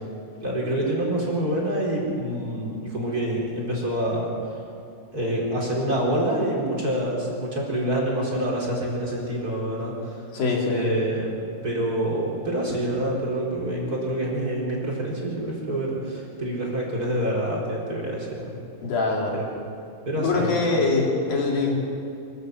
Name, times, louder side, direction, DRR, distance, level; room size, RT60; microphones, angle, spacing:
voice 1, 0.4-4.3 5.1-10.2 10.7-11.3 11.6-18.6 19.3-19.5 20.1-20.6, right 1 dB, 20° right, -4 dB, 4.4 m, -26 dB
voice 2, 10.3-10.9 18.8-19.4 20.2-21.8, left 3 dB, 60° left, -2 dB, 4.8 m, -23 dB
25.0 x 14.5 x 7.9 m, 2.5 s
omnidirectional pair, 4.7 m